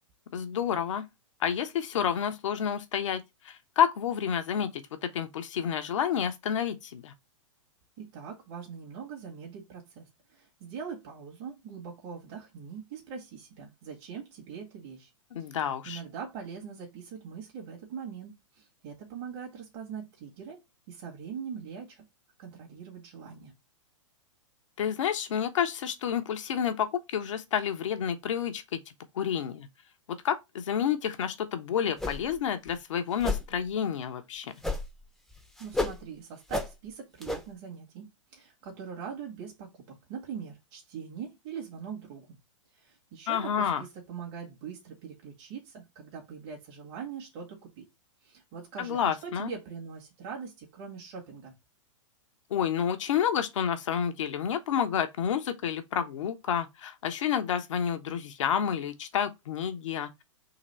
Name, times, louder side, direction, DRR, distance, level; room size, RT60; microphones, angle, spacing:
voice 1, 0.3-1.1 1.4-7.1 15.3-16.0 24.8-28.8 29.1-29.7 30.1-34.5 43.3-43.8 48.8-49.5 52.5-60.1, left 8 dB, 70° left, 0.9 m, -29 dB
voice 2, 8.0-15.1 15.5-20.6 20.9-22.1 22.4-23.5 35.6-42.4 42.7-47.9 48.2-51.6, right 6 dB, 50° right, 1.8 m, -42 dB
sound 1, 32.0-32.4 32.7-32.8 33.2-33.5 34.6-35.0 35.3-36.0 36.5-36.7 37.2-37.4, left 2 dB, ahead, 0.7 m, -31 dB
3.9 x 3.0 x 4.3 m
hypercardioid pair, 115°, 17 cm